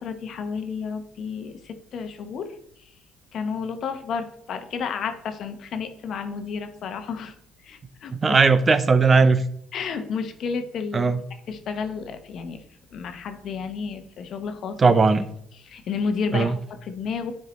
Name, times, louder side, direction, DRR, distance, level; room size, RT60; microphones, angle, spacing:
voice 1, 0.0-2.5 3.3-7.4 7.6-8.4 9.7-11.1 11.5-12.6 12.9-14.9 15.5-17.3, left 5 dB, 60° left, 8 dB, 0.9 m, -31 dB
voice 2, 8.2-9.4 10.9-11.2 14.8-15.2 16.3-16.6, right 4 dB, 30° right, 13 dB, 0.6 m, -18 dB
10.0 x 4.5 x 3.1 m, 0.70 s
supercardioid pair, 75°, 0 cm